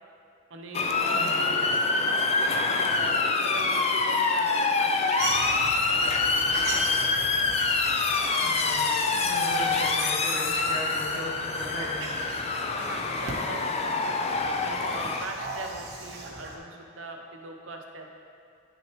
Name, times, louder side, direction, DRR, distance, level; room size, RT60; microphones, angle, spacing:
voice 1, 0.5-1.2 1.9-2.2 2.6-5.2 5.9-7.5 8.3-8.5 10.2-10.8 12.7-14.2 14.6-18.1, right 3 dB, 80° right, 3 dB, 0.8 m, -41 dB
Motor vehicle (road) / Siren, 0.7-15.2, left 3 dB, 30° left, 0.4 m, -26 dB
voice 2, 1.1-1.8 8.4-12.3, left 1 dB, 80° left, -6 dB, 1.8 m, -37 dB
sound 1, 5.2-16.6, right 2 dB, 55° right, 1.0 m, -38 dB
9.7 x 6.3 x 3.1 m, 2.5 s
head